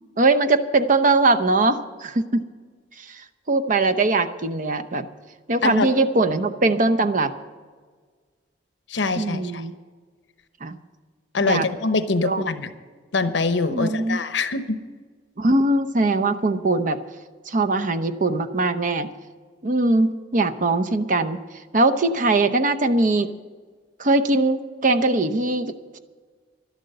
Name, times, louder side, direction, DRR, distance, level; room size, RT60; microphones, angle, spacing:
voice 1, 0.2-2.4 3.0-5.1 5.5-7.3 9.2-9.7 10.6-10.8 11.4-11.7 12.2-12.5 13.7-14.2 15.4-17.0 17.5-19.1 19.6-21.4 21.7-23.3 24.0-26.0, right 2 dB, 45° right, 8 dB, 0.7 m, -21 dB
voice 2, 8.9-9.6 11.3-12.7 13.1-14.8, left 3 dB, 80° left, 11 dB, 0.9 m, -24 dB
11.5 x 11.5 x 6.7 m, 1.5 s
head